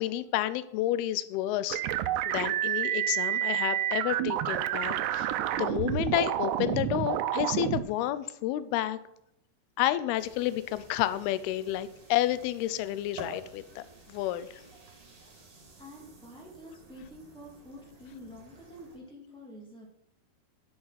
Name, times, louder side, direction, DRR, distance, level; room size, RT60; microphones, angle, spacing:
voice 1, 0.0-1.8 2.3-5.3 5.6-9.0 9.8-14.6, left 13 dB, 80° left, 14 dB, 2.5 m, -30 dB
sound 1, 1.7-7.8, right 12 dB, 90° right, 2.8 m, -29 dB
sound 2, 10.1-19.0, right 1 dB, 40° right, 3.2 m, -51 dB
voice 2, 15.8-19.9, left 1 dB, 5° left, -2 dB, 0.5 m, -48 dB
9.7 x 8.1 x 5.7 m, 0.80 s
omnidirectional pair, 4.7 m